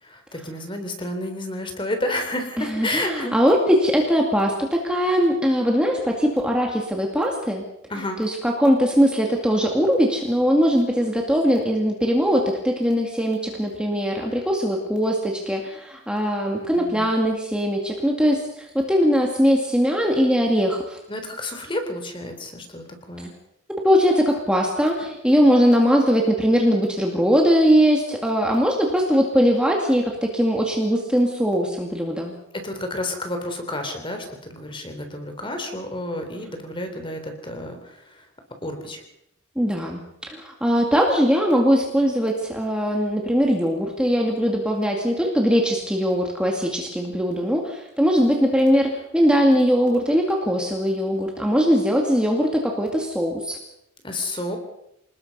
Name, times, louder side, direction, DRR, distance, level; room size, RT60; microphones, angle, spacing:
voice 1, 0.0-3.3 7.9-8.2 16.4-17.1 21.1-23.3 32.6-38.2 38.6-39.0 54.0-54.6, left 1 dB, 20° left, 6 dB, 3.6 m, -30 dB
voice 2, 2.6-7.6 8.2-21.0 23.8-32.3 39.6-40.0 40.3-53.6, equal, 5° right, 0 dB, 2.2 m, -20 dB
27.5 x 20.0 x 5.5 m, 0.81 s
head